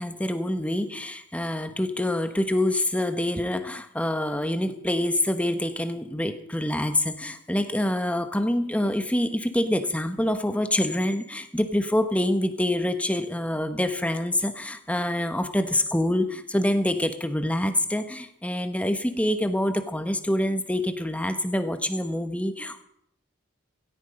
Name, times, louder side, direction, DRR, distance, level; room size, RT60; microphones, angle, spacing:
voice 1, 0.0-22.8, left 1 dB, 5° left, 9 dB, 1.2 m, -26 dB
17.0 x 13.5 x 5.3 m, 0.72 s
head